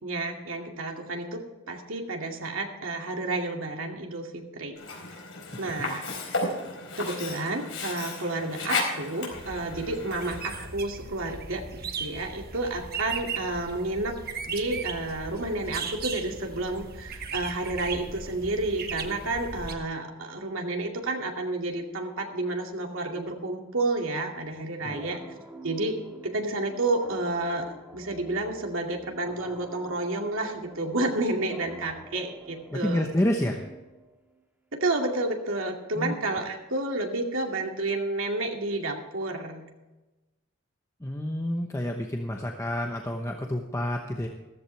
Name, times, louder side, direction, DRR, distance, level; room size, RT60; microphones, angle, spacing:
voice 1, 0.0-1.4 1.7-4.7 5.6-6.0 7.0-14.2 14.4-25.2 25.6-26.0 26.3-33.1 34.7-39.7, right 2 dB, 70° right, 1 dB, 2.4 m, -30 dB
Sink (filling or washing), 4.8-10.7, left 3 dB, 65° left, 4.3 m, -34 dB
sound 1, 9.3-19.7, right 5 dB, 50° right, 1.4 m, -38 dB
sound 2, 24.9-34.3, right 1 dB, 10° right, 1.7 m, -48 dB
voice 2, 32.7-33.6 36.0-36.1 41.0-44.3, left 1 dB, 15° left, 2 dB, 0.9 m, -29 dB
14.5 x 14.5 x 3.4 m, 1.1 s
head